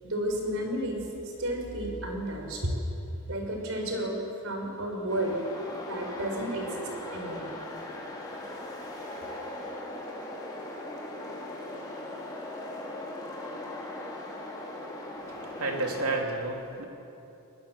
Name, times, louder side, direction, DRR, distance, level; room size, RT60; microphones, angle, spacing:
voice 1, 0.0-1.0 1.4-2.7 3.3-4.1 4.4-5.4 5.9-7.5, right 1 dB, 65° right, 1 dB, 4.8 m, -32 dB
sound 1, 5.1-16.2, left 1 dB, 20° left, 3.5 m, -39 dB
voice 2, 15.3-16.8, right 2 dB, 85° right, 1 dB, 3.2 m, -31 dB
22.5 x 20.5 x 7.2 m, 2.9 s
head